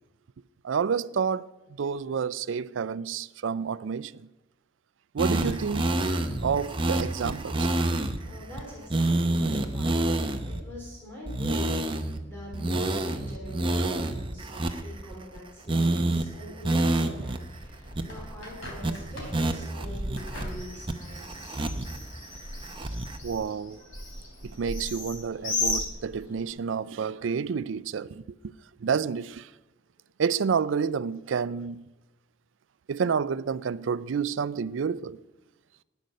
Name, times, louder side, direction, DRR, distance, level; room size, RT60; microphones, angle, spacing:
voice 1, 0.6-1.5 1.8-4.1 5.1-5.9 6.4-7.7 23.2-23.8 24.4-28.2 28.8-29.5 30.2-31.8 32.9-35.2, right 6 dB, 75° right, 0.4 m, -29 dB
sound 1, 5.2-8.2 8.6-8.7 8.9-10.6 11.3-12.2 12.5-15.4 15.7-16.2 16.6-17.4 17.6-17.7 17.9-18.4 18.8-18.9 19.3-20.4 20.9-22.0 22.3-23.2, right 1 dB, 25° right, 0.8 m, -28 dB
voice 2, 7.8-9.9 10.1-11.8 12.2-21.3, equal, 15° left, 3.4 m, -44 dB
Bird, 17.6-26.5, left 2 dB, 85° left, 3.8 m, -36 dB
13.0 x 9.6 x 6.5 m
head